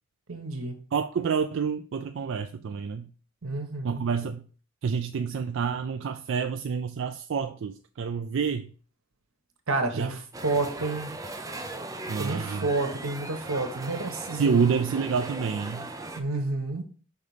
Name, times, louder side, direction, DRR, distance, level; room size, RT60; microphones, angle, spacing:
voice 1, 0.3-0.8 3.4-4.1 9.7-11.1 12.2-14.7 16.2-16.8, right 3 dB, 90° right, 1.3 m, -30 dB
voice 2, 0.9-3.1 3.8-4.4 4.8-8.7 9.9-10.1 12.1-12.7 14.3-15.9, right 6 dB, 65° right, 0.4 m, -28 dB
sound 1, 10.3-16.2, right 2 dB, 15° right, 0.6 m, -38 dB
5.4 x 4.1 x 4.9 m
head